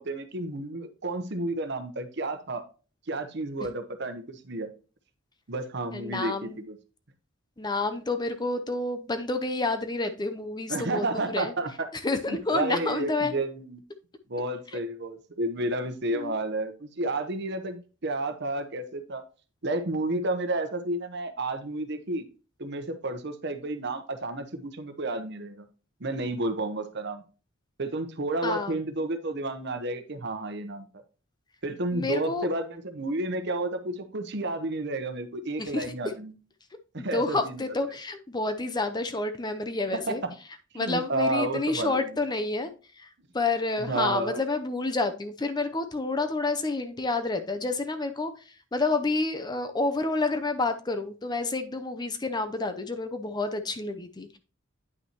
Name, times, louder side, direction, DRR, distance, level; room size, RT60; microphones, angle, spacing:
voice 1, 0.0-2.6 3.1-4.7 5.5-6.8 10.7-11.9 12.3-13.8 14.3-19.2 19.6-22.2 22.6-25.7 26.0-27.2 27.8-30.9 31.6-36.3 36.9-37.6 39.9-40.3 40.7-42.1 43.8-44.4, right 2 dB, 55° right, 8 dB, 1.0 m, -31 dB
voice 2, 5.9-6.6 7.6-11.5 12.0-13.3 16.1-16.3 28.4-28.8 31.9-32.5 35.6-36.0 37.0-40.2 40.8-43.1 43.3-54.4, left 3 dB, 20° left, 8 dB, 0.6 m, -29 dB
9.5 x 5.6 x 2.9 m, 0.35 s
head